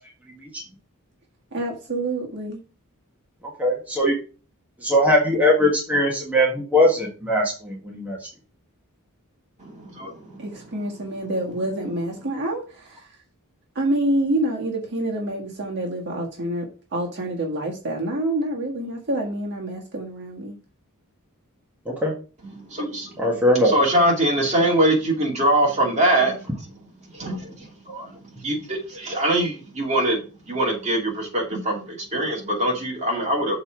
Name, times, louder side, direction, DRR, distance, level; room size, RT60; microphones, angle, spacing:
voice 1, 1.5-2.6 10.4-13.1 13.7-20.5, right 1 dB, 50° right, 1.6 m, -27 dB
voice 2, 3.6-4.1 4.8-8.2 21.9-22.1 23.2-23.7, left 1 dB, 5° right, 1.6 m, -20 dB
voice 3, 9.6-10.5 22.5-26.8 27.1-33.6, right 1 dB, 30° right, 2.8 m, -23 dB
6.7 x 4.3 x 5.9 m
head